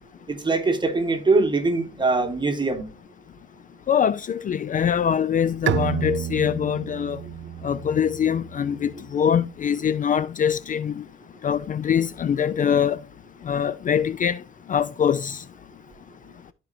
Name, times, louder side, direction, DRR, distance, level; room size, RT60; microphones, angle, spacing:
voice 1, 0.3-2.9, right 3 dB, 25° right, 1.7 m, -22 dB
voice 2, 3.9-7.2 7.6-11.0 11.4-13.0 13.4-14.4 14.7-15.4, left 8 dB, 40° left, 0.4 m, -23 dB
Bowed string instrument, 5.7-9.1, right 13 dB, 70° right, 0.5 m, -30 dB
13.5 x 4.5 x 2.6 m
cardioid pair, 90°, 20 cm